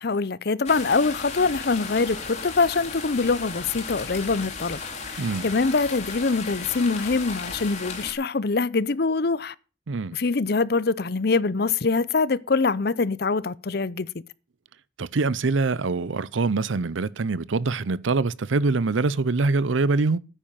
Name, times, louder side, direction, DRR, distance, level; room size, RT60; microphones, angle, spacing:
voice 1, 0.0-4.8 5.1-9.5 10.1-14.1, left 4 dB, 55° left, 0.6 m, -24 dB
sound 1, 0.6-8.1, left 4 dB, 35° left, 3.4 m, -35 dB
voice 2, 15.0-20.2, right 3 dB, 85° right, 0.6 m, -24 dB
10.0 x 9.1 x 7.4 m
head